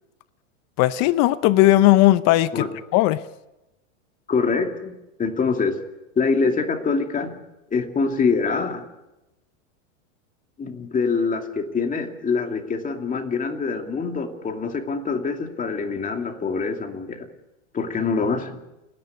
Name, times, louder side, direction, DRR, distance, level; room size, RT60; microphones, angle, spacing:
voice 1, 0.8-2.6 2.9-3.2, left 16 dB, 40° left, 15 dB, 0.8 m, -17 dB
voice 2, 4.3-4.9 5.2-5.7 6.2-7.3 7.7-8.8 10.6-17.3 17.7-18.6, left 4 dB, 20° left, 4 dB, 2.5 m, -24 dB
29.5 x 10.5 x 8.4 m, 0.96 s
hypercardioid pair, 115°, 39 cm